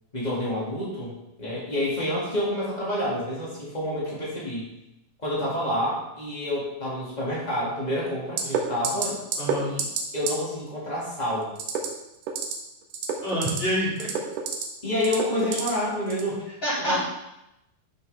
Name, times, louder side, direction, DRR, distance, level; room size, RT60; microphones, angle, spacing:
voice 1, 0.1-4.7 5.2-9.2 9.6-9.8 10.1-11.5 14.8-16.4 16.8-17.0, left 1 dB, 80° left, -7 dB, 0.4 m, -28 dB
sound 1, 8.4-8.6 8.8-9.1 9.3-9.5 9.8-10.0 10.3-10.4 11.6-11.9 12.2-12.5 12.9-13.6 14.0-14.6 15.0-15.7 16.1-16.3, right 8 dB, 70° right, 2.2 m, -27 dB
voice 2, 9.4-9.7 13.2-14.1 16.6-17.0, equal, 15° left, -9 dB, 3.3 m, -26 dB
12.0 x 6.0 x 3.4 m, 0.90 s
omnidirectional pair, 4.9 m